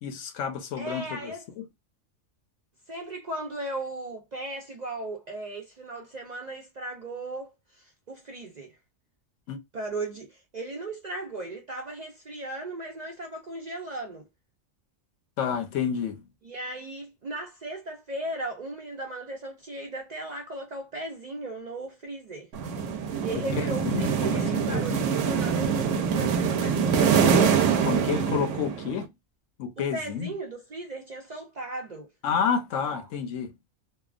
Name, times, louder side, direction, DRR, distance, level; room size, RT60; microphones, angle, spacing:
voice 1, 0.0-1.7 9.5-9.6 15.4-16.2 23.3-25.0 27.8-29.1 29.6-30.3 32.2-33.5, left 7 dB, 75° left, 1.0 m, -30 dB
voice 2, 0.8-1.5 2.9-8.8 9.7-14.3 16.4-22.5 23.2-27.5 29.8-32.1 32.9-33.0, right 2 dB, 50° right, 0.5 m, -37 dB
sound 1, 22.5-29.0, right 7 dB, 75° right, 0.9 m, -24 dB
2.8 x 2.2 x 2.3 m
omnidirectional pair, 1.3 m